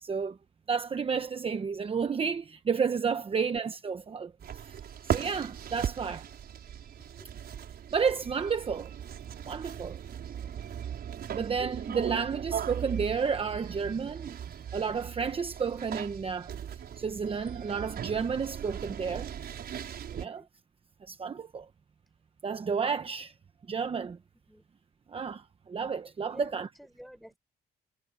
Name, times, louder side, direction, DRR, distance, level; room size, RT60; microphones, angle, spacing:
voice 1, 0.0-0.4 0.7-4.8 5.0-6.2 7.9-8.9 9.5-10.0 11.3-14.4 14.7-16.5 17.0-19.3 20.1-20.4 21.0-21.7 22.4-23.3 23.7-24.2 25.1-26.7, right 6 dB, 35° right, 1.0 m, -31 dB
voice 2, 3.2-3.5 7.2-7.3 10.1-10.5 20.1-20.5 24.5-24.6 26.3-27.4, equal, ahead, 6.9 m, -52 dB
sound 1, 4.4-20.3, right 9 dB, 65° right, 5.8 m, -38 dB
cardioid pair, 130°, 17 cm